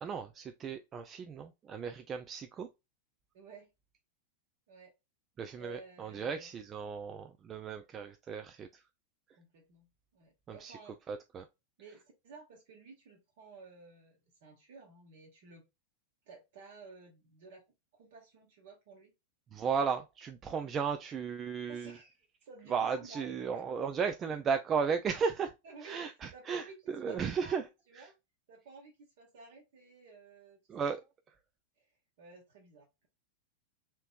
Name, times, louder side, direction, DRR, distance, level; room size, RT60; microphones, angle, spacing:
voice 1, 0.0-2.7 5.4-8.7 10.5-10.8 11.1-11.5 19.5-22.0 22.7-25.5 25.8-27.6 28.0-28.1 30.7-31.0, right 6 dB, 25° right, 0.3 m, -35 dB
voice 2, 3.3-3.7 4.7-4.9 5.6-6.5 9.4-9.9 10.1-11.0 11.8-15.6 16.3-17.6 17.9-19.1 21.7-23.6 25.6-26.8 27.1-28.1 28.5-30.9 31.8-31.9 32.2-33.1, right 4 dB, 55° right, 1.1 m, -53 dB
4.3 x 3.0 x 2.3 m
figure-of-eight pair, 90°, 0 cm